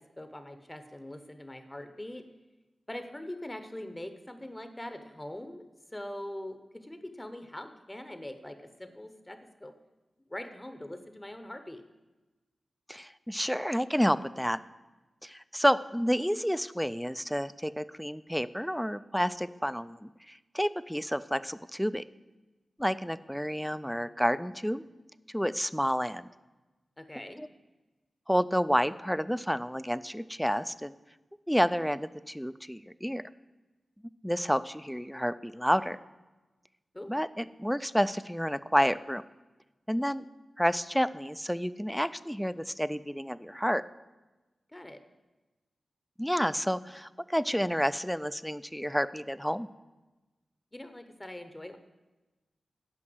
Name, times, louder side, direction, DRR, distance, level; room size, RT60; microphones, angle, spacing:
voice 1, 0.0-2.3 2.9-5.7 5.9-9.7 10.3-11.8 27.0-27.5 36.9-37.1 44.7-45.0 50.7-51.8, left 1 dB, 15° left, 9 dB, 0.8 m, -42 dB
voice 2, 12.9-14.6 15.2-22.0 22.8-24.8 25.3-26.3 27.4-27.5 28.3-30.9 31.5-33.2 34.2-36.0 37.1-39.2 39.9-40.3 40.6-43.8 46.2-49.7, equal, ahead, 15 dB, 0.3 m, -30 dB
9.7 x 5.4 x 7.7 m, 1.1 s
wide cardioid pair, 75°, 0 cm